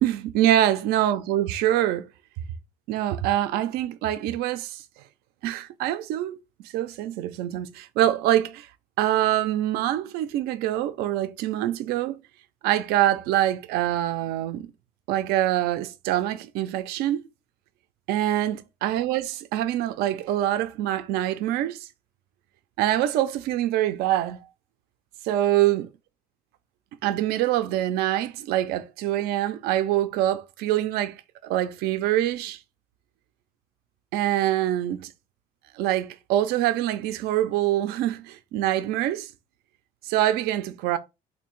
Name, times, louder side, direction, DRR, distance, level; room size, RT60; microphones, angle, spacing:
voice 1, 0.0-2.1 2.9-4.8 5.4-6.4 6.6-8.7 9.0-12.2 12.6-14.7 15.1-17.2 18.1-21.9 22.8-24.4 25.2-25.9 27.0-32.6 34.1-35.1 35.8-39.3 40.1-41.0, right 13 dB, 80° right, 0.4 m, -25 dB
3.4 x 2.7 x 3.0 m
cardioid pair, 160°, 16 cm